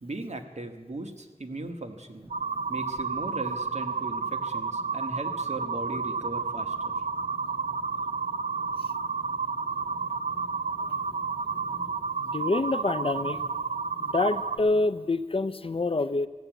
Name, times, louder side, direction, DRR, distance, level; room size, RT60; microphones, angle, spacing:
voice 1, 0.0-2.3 2.7-6.9, right 2 dB, 65° right, 5 dB, 1.3 m, -38 dB
sound 1, 2.2-14.8, equal, 30° right, 3.5 m, -50 dB
sound 2, 2.3-14.6, right 5 dB, 90° right, 0.5 m, -31 dB
voice 2, 12.2-13.4 14.0-16.3, left 3 dB, 50° left, 11 dB, 0.5 m, -27 dB
15.0 x 7.1 x 9.1 m, 1.3 s
wide cardioid pair, 60°, 13 cm